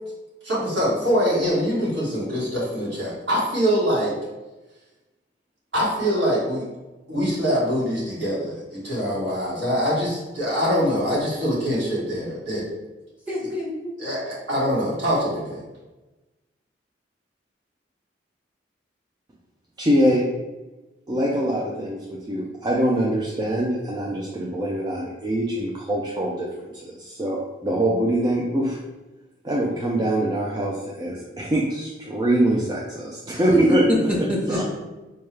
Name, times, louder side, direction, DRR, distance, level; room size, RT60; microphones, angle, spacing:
voice 1, 0.4-4.1 5.7-6.7 7.1-12.6 14.0-15.6, equal, 80° right, -8 dB, 1.5 m, -24 dB
voice 2, 13.3-14.0 33.3-33.6 33.9-34.6, equal, 5° right, -4 dB, 0.8 m, -24 dB
voice 3, 19.8-20.2 21.1-26.5 26.8-28.8 29.4-33.8 34.5-34.6, right 1 dB, 20° right, -3 dB, 0.4 m, -23 dB
4.4 x 2.3 x 3.2 m, 1.1 s
head